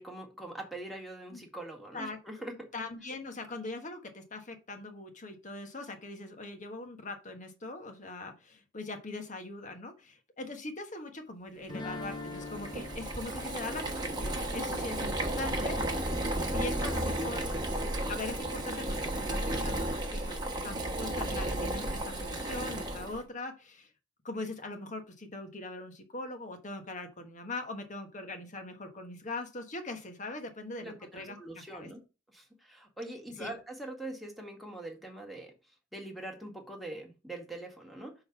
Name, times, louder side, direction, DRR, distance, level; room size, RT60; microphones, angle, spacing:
voice 1, 0.0-2.5 30.8-32.0 32.3-35.5 35.9-38.1, right 1 dB, ahead, 1 dB, 1.7 m, -43 dB
voice 2, 2.7-16.2 16.5-17.5 17.8-23.9 24.2-31.4 31.7-31.9 33.4-33.5, left 2 dB, 40° left, 5 dB, 1.3 m, -41 dB
sound 1, 11.7-16.6, left 3 dB, 25° left, 0.9 m, -45 dB
Boiling, 11.9-23.2, right 1 dB, 25° right, 1.3 m, -33 dB
6.3 x 3.9 x 5.8 m, 0.31 s
head